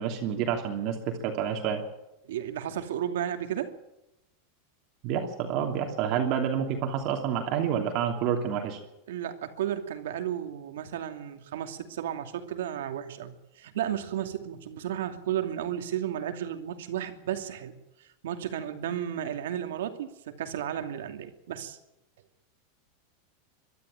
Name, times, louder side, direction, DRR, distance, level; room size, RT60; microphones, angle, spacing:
voice 1, 0.0-1.8 5.0-8.8, right 8 dB, 40° right, 3 dB, 2.8 m, -28 dB
voice 2, 2.3-3.7 9.1-21.8, right 10 dB, 85° right, 7 dB, 2.6 m, -33 dB
22.5 x 12.5 x 9.0 m, 0.89 s
supercardioid pair, 155°, 0 cm